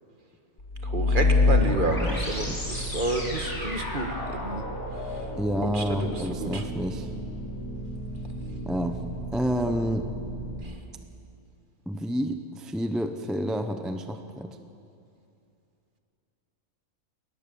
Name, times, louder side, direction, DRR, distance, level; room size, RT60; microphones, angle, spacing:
sound 1, 0.6-10.6, left 2 dB, 80° left, 4.2 m, -29 dB
voice 1, 0.8-4.6 5.7-6.1 6.4-6.6, right 2 dB, 35° right, 5 dB, 1.6 m, -30 dB
voice 2, 1.8-2.7 5.4-7.1 8.7-9.0 9.3-10.1 11.9-14.6, equal, ahead, 7 dB, 0.5 m, -29 dB
20.5 x 19.0 x 7.0 m, 2.6 s
omnidirectional pair, 1.5 m